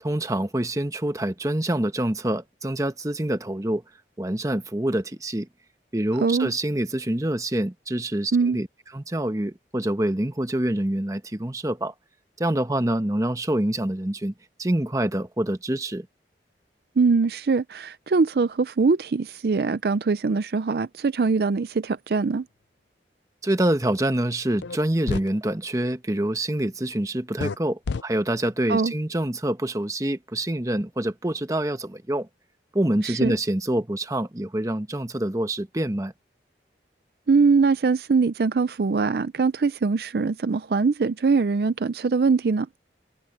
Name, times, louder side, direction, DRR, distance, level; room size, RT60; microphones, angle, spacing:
voice 1, 0.0-3.8 4.2-5.5 5.9-8.7 8.9-11.9 12.4-14.3 14.6-16.1 23.4-32.3 32.7-36.1, right 1 dB, 20° right, 1.0 m, -26 dB
voice 2, 6.2-6.5 8.3-8.6 17.0-22.4 28.7-28.9 33.0-33.3 37.3-42.7, right 4 dB, 60° right, 0.4 m, -22 dB
sound 1, 24.6-24.8 25.1-25.3 27.4-27.6 27.9-28.0, left 4 dB, 85° left, 0.5 m, -28 dB
head